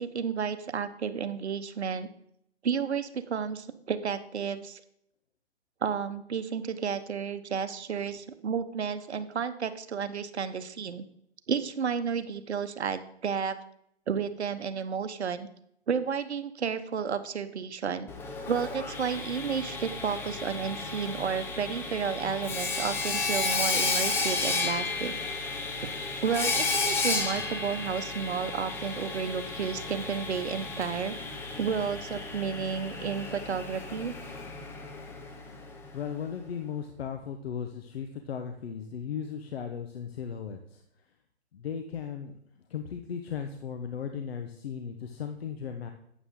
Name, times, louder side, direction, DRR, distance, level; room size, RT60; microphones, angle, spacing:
voice 1, 0.0-2.1 2.6-4.8 5.8-11.0 11.5-13.6 14.1-15.5 15.9-18.1 18.5-25.2 25.8-25.9 26.2-31.1 31.6-34.2, right 6 dB, 75° right, 11 dB, 1.0 m, -32 dB
Sawing, 18.1-35.9, left 3 dB, 5° left, 0.6 m, -33 dB
voice 2, 35.9-40.8 41.5-42.3 42.7-45.9, left 7 dB, 65° left, 6 dB, 1.1 m, -36 dB
11.5 x 8.4 x 3.8 m, 0.72 s
hypercardioid pair, 135°, 33 cm